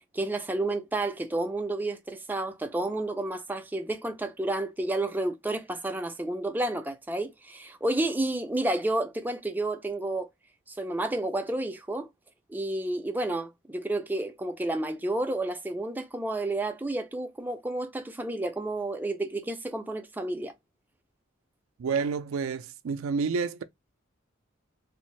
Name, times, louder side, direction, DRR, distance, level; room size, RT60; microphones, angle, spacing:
voice 1, 0.1-10.3 10.7-12.1 12.5-20.5, right 2 dB, 10° right, 0.4 m, -30 dB
voice 2, 21.8-23.6, right 5 dB, 70° right, 0.4 m, -29 dB
3.4 x 2.4 x 3.1 m
head